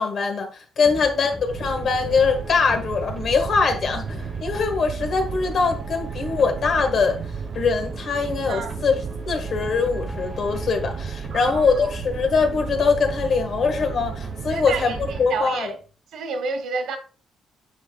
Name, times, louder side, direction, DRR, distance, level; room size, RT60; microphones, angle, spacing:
voice 1, 0.0-7.2 7.5-9.0 9.3-15.7, left 5 dB, 50° left, 1.5 m, -22 dB
sound 1, 0.8-15.9, left 1 dB, 5° left, 1.2 m, -39 dB
sound 2, 1.5-15.2, right 7 dB, 60° right, 0.4 m, -34 dB
voice 2, 11.3-11.9 14.5-15.8 16.1-17.0, right 4 dB, 80° right, 1.4 m, -30 dB
8.5 x 6.3 x 2.3 m
cardioid pair, 145°, 0 cm